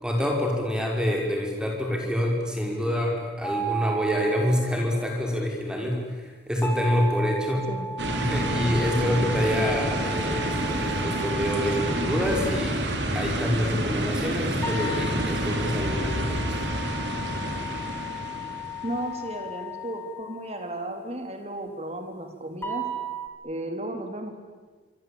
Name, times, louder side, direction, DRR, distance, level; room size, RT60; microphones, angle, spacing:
voice 1, 0.0-7.7 8.2-16.5, equal, 5° right, 0 dB, 5.2 m, -27 dB
sound 1, 3.4-5.0 6.6-12.7 14.6-20.8 22.6-23.3, right 1 dB, 15° left, 2.8 m, -35 dB
sound 2, 8.0-19.2, right 1 dB, 85° right, 4.0 m, -29 dB
voice 2, 18.8-22.9 23.4-24.4, right 1 dB, 35° right, 5 dB, 3.3 m, -34 dB
26.5 x 25.0 x 8.8 m, 1.4 s
head